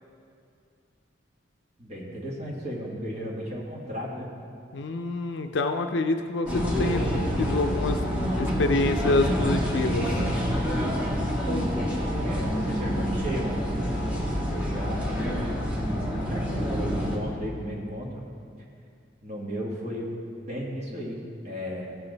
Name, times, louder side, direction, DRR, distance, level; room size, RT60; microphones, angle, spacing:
voice 1, 1.8-4.3 12.2-13.6 14.5-15.2 16.2-18.2 19.2-21.9, equal, 35° right, -4 dB, 1.8 m, -35 dB
voice 2, 4.7-7.1 7.4-8.0 8.3-10.2, left 2 dB, 65° left, 6 dB, 0.5 m, -26 dB
sound 1, 6.5-17.2, equal, 5° right, 1.6 m, -27 dB
16.0 x 7.0 x 4.0 m, 2.4 s
head